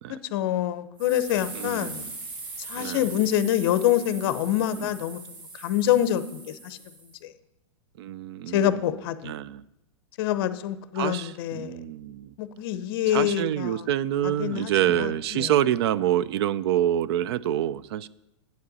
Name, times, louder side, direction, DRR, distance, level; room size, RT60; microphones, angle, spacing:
voice 1, 0.1-2.0 2.6-5.2 5.6-6.8 7.2-7.3 8.5-9.3 10.2-11.8 12.4-13.8 14.2-15.5, left 11 dB, 45° left, 13 dB, 0.6 m, -26 dB
sound 1, 1.0-7.2, right 3 dB, 30° right, 1.0 m, -40 dB
voice 2, 1.5-2.1 2.7-3.1 4.8-5.0 8.0-8.7 9.2-9.6 11.0-12.3 13.1-18.1, right 11 dB, 50° right, 19 dB, 0.4 m, -27 dB
9.7 x 7.8 x 4.0 m, 0.92 s
supercardioid pair, 155°, 17 cm